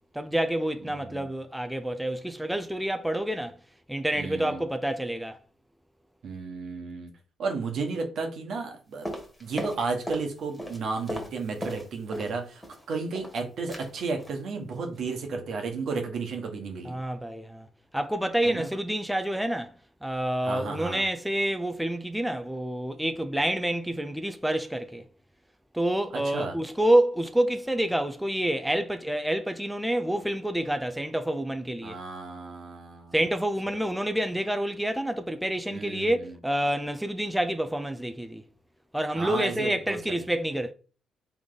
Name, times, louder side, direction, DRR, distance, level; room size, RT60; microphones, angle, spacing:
voice 1, 0.1-3.6 3.9-5.4 16.8-17.7 17.9-19.7 20.0-25.0 25.7-32.0 33.1-38.4 38.9-40.7, right 1 dB, 5° right, 0.5 m, -28 dB
voice 2, 0.9-1.3 4.1-4.6 6.2-7.1 7.4-9.1 9.4-17.0 18.4-18.7 20.4-21.1 26.1-26.6 31.8-33.1 35.7-36.3 39.1-40.2, right 4 dB, 65° right, 1.1 m, -33 dB
sound 1, 9.0-10.3 10.5-12.3 12.6-13.4 13.7-13.9 14.2-14.4 14.7-15.0 15.2-15.3, equal, 10° left, 1.7 m, -37 dB
3.5 x 3.2 x 3.8 m
supercardioid pair, 55°, 0 cm